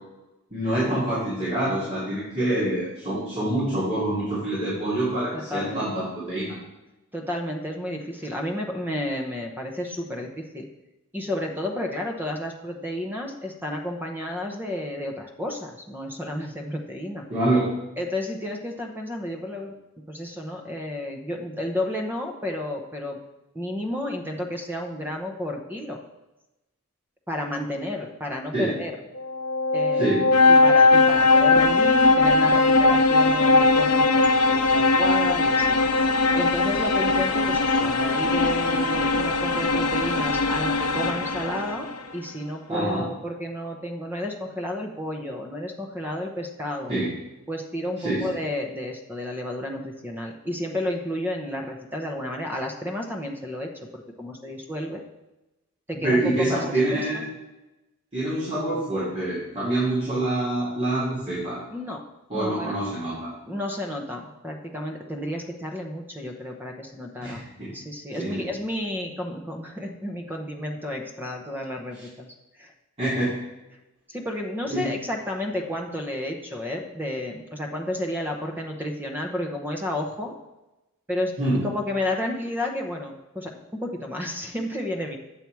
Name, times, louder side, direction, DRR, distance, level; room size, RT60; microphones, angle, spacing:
voice 1, 0.5-6.5 17.3-17.7 28.5-28.7 29.9-30.2 42.7-43.0 46.9-47.1 48.0-48.2 56.0-57.3 58.1-61.6 62.3-63.3 67.2-67.7 68.2-68.4 73.0-73.3 74.7-74.9 81.4-81.6, right 1 dB, 25° right, -11 dB, 2.5 m, -26 dB
voice 2, 5.3-5.8 7.1-10.7 11.1-17.3 18.0-19.7 20.1-23.2 23.5-26.0 27.3-28.9 29.7-30.2 30.5-46.9 47.5-55.0 55.9-56.6 56.9-57.2 61.7-62.0 62.3-62.8 63.5-67.4 67.7-72.7 74.1-80.4 81.1-81.3 81.6-85.2, left 1 dB, 10° right, 2 dB, 0.8 m, -32 dB
sound 1, 29.2-42.0, left 3 dB, 80° left, 0.6 m, -20 dB
8.8 x 7.1 x 4.6 m, 1.0 s
head